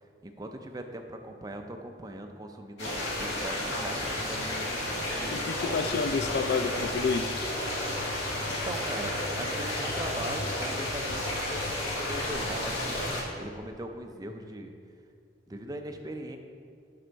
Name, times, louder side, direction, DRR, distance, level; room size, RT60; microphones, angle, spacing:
voice 1, 0.2-4.8 8.4-13.0 13.4-14.7 15.5-16.4, right 1 dB, 20° right, 5 dB, 0.4 m, -40 dB
sound 1, 2.8-13.2, left 1 dB, 80° left, 1.8 m, -32 dB
voice 2, 5.3-7.4, left 5 dB, 55° left, 10 dB, 0.3 m, -29 dB
7.7 x 5.5 x 4.0 m, 2.3 s
head